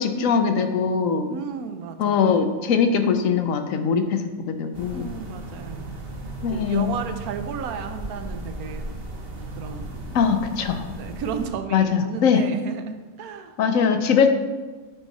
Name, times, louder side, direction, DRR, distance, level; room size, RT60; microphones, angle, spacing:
voice 1, 0.0-1.3 2.0-5.1 6.4-7.0 10.1-10.9 11.7-12.4 13.6-14.3, left 6 dB, 70° left, 7 dB, 1.0 m, -21 dB
voice 2, 1.3-2.5 4.9-6.0 6.5-8.8 9.6-10.2 11.0-13.5 14.2-14.3, right 7 dB, 85° right, 8 dB, 1.1 m, -34 dB
sound 1, 4.7-11.5, right 1 dB, 45° right, 1.1 m, -36 dB
9.0 x 4.7 x 4.1 m, 1.3 s
omnidirectional pair, 1.5 m